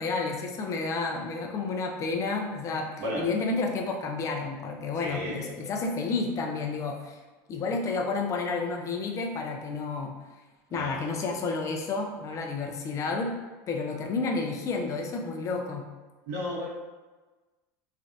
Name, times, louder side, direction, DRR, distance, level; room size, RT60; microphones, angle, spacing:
voice 1, 0.0-2.9 3.2-7.2 7.5-10.1 10.7-13.4 13.7-15.9, left 4 dB, 35° left, 2 dB, 0.5 m, -30 dB
voice 2, 5.0-5.4 10.7-11.0 16.3-16.7, equal, 80° right, -7 dB, 1.4 m, -33 dB
3.3 x 2.5 x 2.6 m, 1.2 s
supercardioid pair, 120°, 10 cm